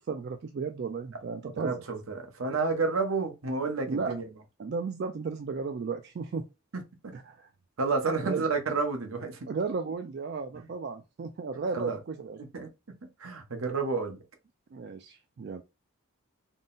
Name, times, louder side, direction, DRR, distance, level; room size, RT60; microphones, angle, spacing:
voice 1, 0.0-1.8 3.9-4.2 4.6-6.4 7.1-7.5 8.2-8.5 9.5-12.4 14.7-15.6, right 4 dB, 50° right, 0.3 m, -34 dB
voice 2, 1.4-4.2 7.0-7.1 7.8-9.5 10.6-10.7 11.7-12.0 12.5-12.7 13.2-14.2, right 4 dB, 75° right, 0.9 m, -30 dB
3.8 x 2.1 x 3.9 m
head